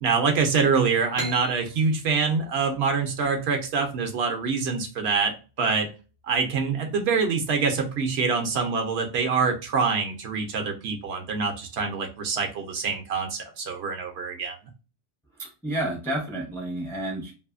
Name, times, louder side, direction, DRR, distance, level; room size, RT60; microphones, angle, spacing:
voice 1, 0.0-5.3 5.6-5.9 6.3-14.6, right 5 dB, 70° right, 4 dB, 0.8 m, -25 dB
sound 1, 1.1-4.6, equal, 60° left, 1.1 m, -40 dB
voice 2, 15.4-17.3, right 1 dB, 5° left, 0 dB, 0.5 m, -30 dB
2.7 x 2.5 x 2.4 m, 0.33 s
omnidirectional pair, 1.2 m